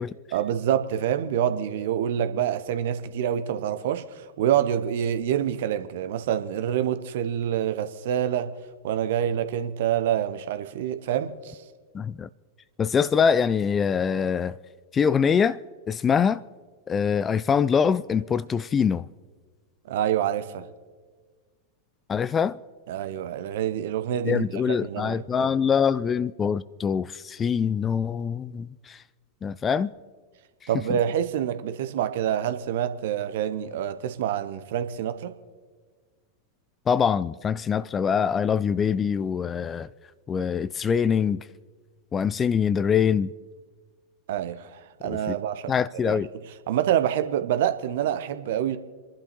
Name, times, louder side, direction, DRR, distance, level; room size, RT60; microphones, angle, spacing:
voice 1, 0.3-8.5 8.8-11.6 19.8-20.6 22.9-25.5 30.7-35.3 44.3-46.2 46.7-48.8, right 10 dB, 55° right, 0.9 m, -27 dB
voice 2, 11.9-12.3 12.8-14.6 14.9-15.6 15.9-16.4 16.9-19.1 22.1-22.6 24.2-29.0 29.4-29.9 36.9-39.9 40.3-41.4 42.1-43.3 45.0-45.2 45.7-46.3, left 7 dB, 20° left, 0.3 m, -24 dB
29.0 x 11.5 x 3.1 m
figure-of-eight pair, 90°, 0 cm